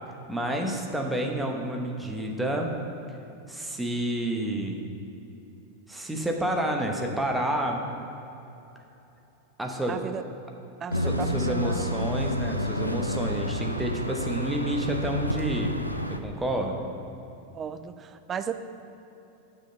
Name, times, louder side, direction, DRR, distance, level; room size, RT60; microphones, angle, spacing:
voice 1, 0.3-2.7 3.5-4.9 5.9-7.9 9.6-10.1 10.9-15.7 16.1-16.9, right 1 dB, 5° right, 1 dB, 1.1 m, -29 dB
voice 2, 9.9-10.2 10.8-12.1 17.5-18.5, right 7 dB, 25° right, 10 dB, 0.5 m, -35 dB
sound 1, 10.9-16.2, equal, 90° left, 0.5 m, -29 dB
8.4 x 6.3 x 5.5 m, 2.9 s
figure-of-eight pair, 90°, 0 cm